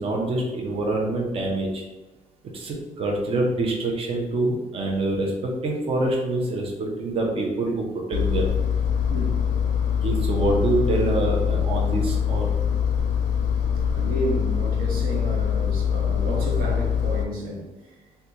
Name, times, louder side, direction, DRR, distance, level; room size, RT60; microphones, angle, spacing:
voice 1, 0.0-1.8 2.5-8.5 10.0-12.5, right 2 dB, 40° right, -1 dB, 0.6 m, -25 dB
Engine, 8.1-17.2, left 8 dB, 55° left, 0.4 m, -23 dB
voice 2, 9.1-9.4 13.9-17.6, right 1 dB, 80° right, -2 dB, 1.0 m, -31 dB
3.8 x 2.3 x 2.8 m, 1.1 s
cardioid pair, 145°, 15 cm